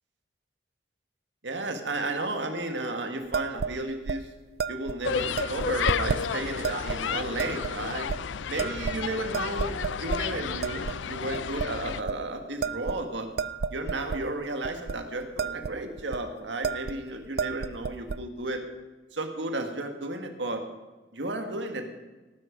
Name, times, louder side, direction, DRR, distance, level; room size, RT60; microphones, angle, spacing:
voice 1, 1.4-4.3 4.7-8.1 8.5-13.3 13.7-18.6 19.1-20.7 21.1-21.9, right 2 dB, 75° right, 5 dB, 1.9 m, -33 dB
sound 1, 3.3-3.7 4.1-4.2 4.6-4.9 5.4-6.2 6.6-7.0 7.4-7.7 8.1-8.2 8.6-9.1 9.3-10.2 10.6-11.0 11.3-11.7 12.0-12.2 12.6-14.2 14.6-15.0 15.2-15.7 16.0-16.2 16.6-17.0 17.2-18.2, right 5 dB, 55° right, 0.4 m, -31 dB
sound 2, 5.0-12.0, left 7 dB, 85° left, 0.5 m, -32 dB
18.0 x 10.0 x 5.2 m, 1.2 s
head